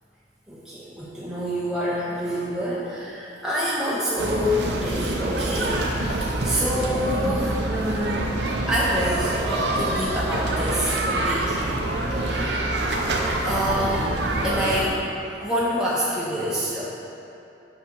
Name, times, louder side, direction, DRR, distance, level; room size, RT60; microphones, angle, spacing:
voice 1, 0.5-8.4 8.7-11.8 12.2-12.7 13.4-14.1 14.4-15.0 15.3-16.9, equal, 5° right, -8 dB, 0.7 m, -27 dB
sound 1, 4.2-14.9, right 2 dB, 70° right, 0.7 m, -26 dB
5.4 x 5.0 x 5.3 m, 2.8 s
head